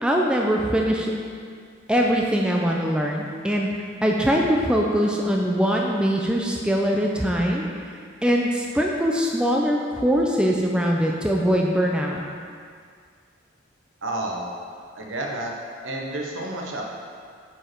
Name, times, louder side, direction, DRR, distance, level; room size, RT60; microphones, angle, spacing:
voice 1, 0.0-1.1 1.9-3.7 4.0-7.7 8.2-12.2, equal, 5° right, -1 dB, 0.5 m, -22 dB
voice 2, 14.0-14.5 14.9-15.5 15.8-16.8, right 1 dB, 80° right, -1 dB, 1.2 m, -30 dB
8.5 x 5.2 x 4.5 m, 2.1 s
head